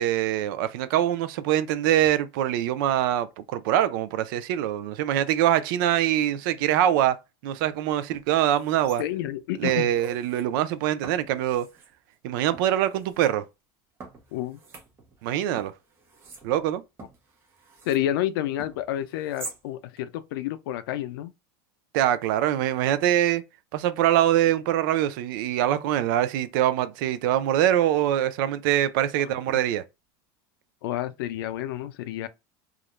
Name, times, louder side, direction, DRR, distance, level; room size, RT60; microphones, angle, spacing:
voice 1, 0.0-9.0 9.6-11.7 12.2-13.4 15.2-15.7 16.4-16.8 21.9-23.4 23.7-29.8, right 12 dB, 65° right, 0.4 m, -24 dB
sound 1, 7.6-7.7 8.1-9.3 9.7-10.5 11.0-11.9 12.5-13.3 14.0-15.3 15.6-18.1 18.6-19.6 20.0-20.1, right 4 dB, 20° right, 0.7 m, -45 dB
voice 2, 9.0-9.9 14.3-14.6 17.9-21.3 30.8-32.3, left 12 dB, 85° left, 0.4 m, -29 dB
2.4 x 2.0 x 2.9 m
supercardioid pair, 165°, 12 cm